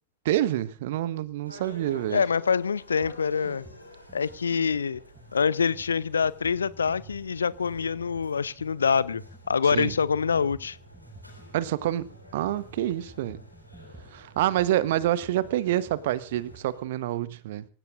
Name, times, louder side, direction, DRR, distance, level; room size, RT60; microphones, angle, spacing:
voice 1, 0.2-2.2 9.7-9.9 11.5-13.4 14.1-17.7, right 13 dB, 55° right, 1.0 m, -27 dB
sound 1, 1.4-16.8, equal, 90° left, 4.0 m, -50 dB
voice 2, 2.1-3.6 4.1-5.0 5.3-9.2 9.5-10.8, left 6 dB, 70° left, 0.7 m, -25 dB
sound 2, 3.0-3.2 3.4-16.7, right 2 dB, 10° right, 1.7 m, -51 dB
26.5 x 16.5 x 2.6 m
figure-of-eight pair, 90°, 0 cm